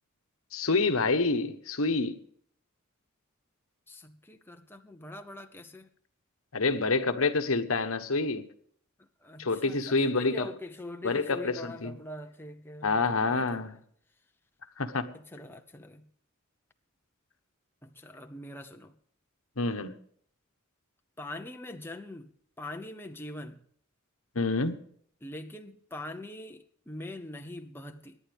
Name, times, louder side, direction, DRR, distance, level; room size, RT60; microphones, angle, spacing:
voice 1, 0.5-2.2 6.5-8.5 9.4-10.5 11.0-11.9 12.8-13.8 14.8-15.1 19.6-19.9 24.3-24.8, left 3 dB, 70° left, 1.2 m, -27 dB
voice 2, 3.9-5.9 9.2-13.6 15.1-16.0 17.8-18.9 21.2-22.3 22.6-23.6 25.2-28.2, left 1 dB, 10° left, 0.8 m, -43 dB
24.0 x 10.5 x 3.5 m
head